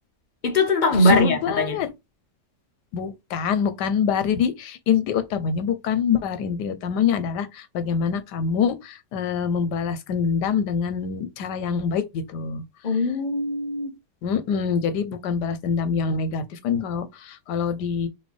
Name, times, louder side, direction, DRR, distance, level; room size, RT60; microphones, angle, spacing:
voice 1, 0.4-1.8 12.8-14.0, left 1 dB, 60° left, 0.4 m, -21 dB
voice 2, 1.0-1.9 2.9-12.6 14.2-18.1, left 7 dB, 85° left, 1.3 m, -25 dB
4.4 x 2.8 x 3.3 m
omnidirectional pair, 1.8 m